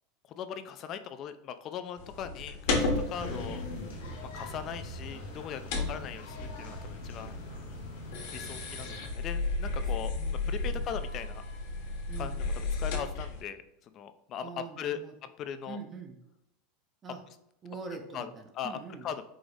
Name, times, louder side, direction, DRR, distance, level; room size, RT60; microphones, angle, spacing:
voice 1, 0.3-3.6 4.2-7.3 8.3-10.1 10.5-11.4 12.2-15.0 15.4-15.8 18.1-18.3 18.5-19.2, left 8 dB, 45° left, 11 dB, 0.4 m, -39 dB
sound 1, 2.0-13.4, left 3 dB, 70° left, 1.1 m, -34 dB
sound 2, 2.6-9.1, left 1 dB, 90° left, 1.3 m, -44 dB
voice 2, 3.2-3.5 5.7-6.1 10.0-10.9 12.1-12.4 14.4-15.1 15.7-16.2 17.0-17.2 17.6-19.1, right 4 dB, 30° right, 3 dB, 0.6 m, -44 dB
4.8 x 2.0 x 3.8 m, 0.82 s
hypercardioid pair, 110°, 0 cm